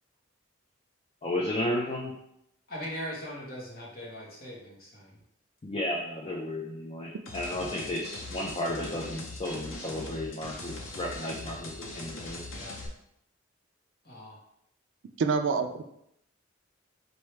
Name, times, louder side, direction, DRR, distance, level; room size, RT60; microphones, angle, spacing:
voice 1, 1.2-2.1 5.6-12.4, left 1 dB, 30° left, -2 dB, 0.4 m, -33 dB
voice 2, 2.7-5.2 12.5-12.8 14.0-14.4, equal, 50° left, -3 dB, 1.1 m, -40 dB
sound 1, 7.3-12.9, left 2 dB, 85° left, 0.7 m, -41 dB
voice 3, 15.2-15.9, right 5 dB, 70° right, 7 dB, 0.3 m, -26 dB
4.5 x 2.7 x 3.3 m, 0.76 s
head